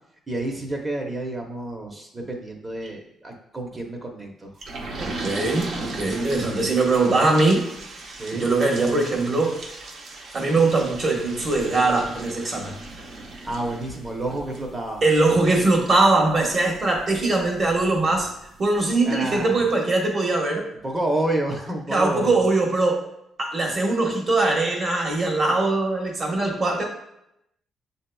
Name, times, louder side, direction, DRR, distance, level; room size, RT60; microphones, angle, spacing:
voice 1, 0.3-4.5 8.2-8.5 13.4-15.0 19.0-19.5 20.8-22.4, right 1 dB, 25° right, 2 dB, 0.8 m, -29 dB
sound 1, 4.6-18.9 19.3-19.4 19.7-19.8, right 2 dB, 65° right, 0.8 m, -38 dB
voice 2, 5.0-7.7 8.3-9.6 10.3-12.7 15.0-18.3 18.6-20.7 21.9-23.1 23.4-26.8, right 2 dB, 40° right, 0 dB, 1.2 m, -21 dB
7.2 x 2.8 x 2.3 m, 0.79 s
cardioid pair, 90°, 0 cm